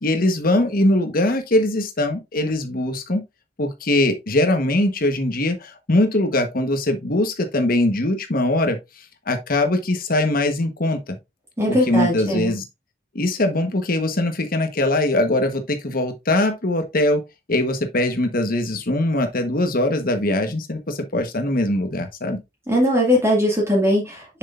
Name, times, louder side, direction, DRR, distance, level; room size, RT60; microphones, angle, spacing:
voice 1, 0.0-3.2 3.6-8.8 9.3-11.2 11.7-12.6 13.1-17.2 17.5-22.4, left 1 dB, 55° left, 1.3 m, -21 dB
voice 2, 11.6-12.5 22.7-24.4, equal, 15° right, 2.1 m, -20 dB
6.7 x 6.5 x 2.5 m
head